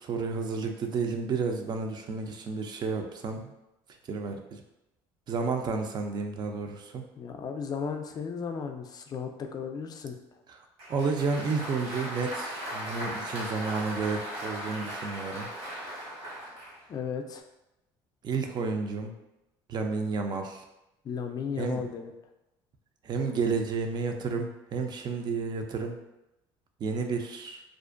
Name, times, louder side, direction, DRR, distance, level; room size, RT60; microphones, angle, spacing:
voice 1, 0.0-3.5 4.1-4.6 5.3-7.0 10.5-15.5 18.2-19.1 19.7-20.6 21.6-21.8 23.0-26.0 26.8-27.6, right 4 dB, 45° right, 4 dB, 0.4 m, -31 dB
voice 2, 7.2-10.2 16.9-17.4 21.0-22.1, left 6 dB, 40° left, 5 dB, 0.3 m, -35 dB
Applause, 10.8-16.8, equal, 75° right, 1.2 m, -38 dB
2.4 x 2.1 x 2.4 m, 0.92 s
supercardioid pair, 85°, 11 cm